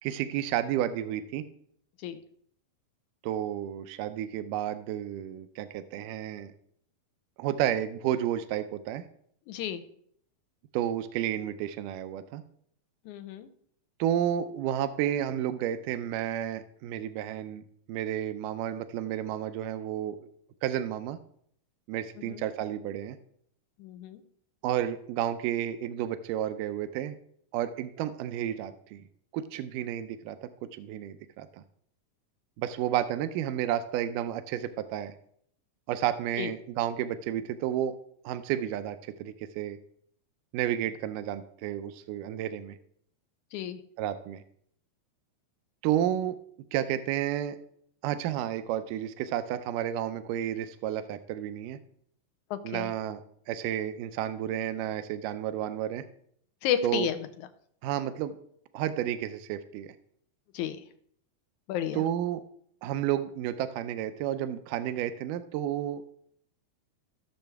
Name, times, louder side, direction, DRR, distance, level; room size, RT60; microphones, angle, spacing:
voice 1, 0.0-1.5 3.2-6.5 7.4-9.0 10.7-12.4 14.0-17.6 17.9-20.3 20.6-21.2 21.9-23.2 24.6-27.2 27.5-29.0 29.3-30.5 30.8-31.5 32.6-35.1 35.9-38.0 38.3-39.8 40.5-42.8 44.0-44.4 45.8-46.4 46.7-47.6 48.0-51.8 52.6-53.2 53.5-56.1 56.8-57.1 57.8-58.4 58.7-60.0 61.9-62.4 62.8-66.1, right 11 dB, 80° right, 10 dB, 2.2 m, -31 dB
voice 2, 9.5-9.8 13.1-13.5 22.3-22.4 23.8-24.2 36.4-36.5 43.5-43.8 52.5-52.9 56.6-57.2 60.5-60.8 61.7-62.0, left 10 dB, 75° left, 10 dB, 2.0 m, -31 dB
15.5 x 6.9 x 3.5 m, 0.65 s
omnidirectional pair, 3.9 m